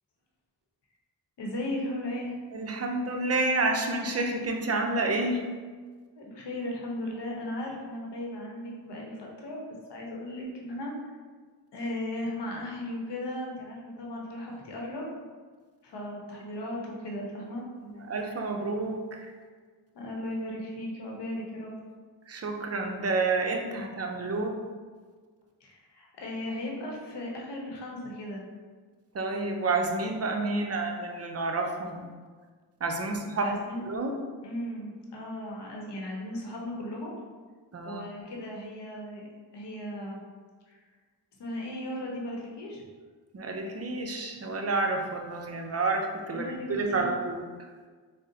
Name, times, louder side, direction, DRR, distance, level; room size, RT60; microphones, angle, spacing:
voice 1, 1.4-2.3 6.2-9.6 9.9-10.9 11.7-15.1 15.8-17.6 19.9-21.7 25.6-28.4 33.3-33.8 34.4-37.2 37.8-39.2 39.5-40.2 40.7-40.8 41.4-42.8 46.3-47.1, left 1 dB, 70° left, -2 dB, 0.8 m, -36 dB
voice 2, 2.5-5.4 17.8-19.3 22.3-24.5 29.1-32.1 32.8-33.5 33.9-34.2 37.7-38.0 43.3-47.4, right 3 dB, 35° right, 2 dB, 0.5 m, -29 dB
3.7 x 2.0 x 2.7 m, 1.5 s
cardioid pair, 45°, 43 cm